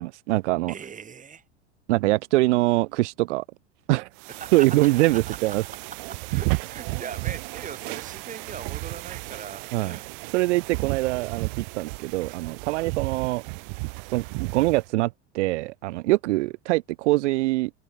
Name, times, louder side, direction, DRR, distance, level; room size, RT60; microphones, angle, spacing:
voice 1, 0.0-0.7 1.9-3.4 3.9-4.1 4.5-5.6 9.7-10.0 10.3-13.4 14.1-17.7, right 20 dB, 85° right, 0.5 m, -23 dB
voice 2, 0.7-1.4 4.3-4.7 5.3-5.5 6.1-10.0, right 7 dB, 20° right, 2.6 m, -40 dB
sound 1, 4.2-14.9, right 38 dB, 65° right, 4.6 m, -33 dB
supercardioid pair, 115°, 34 cm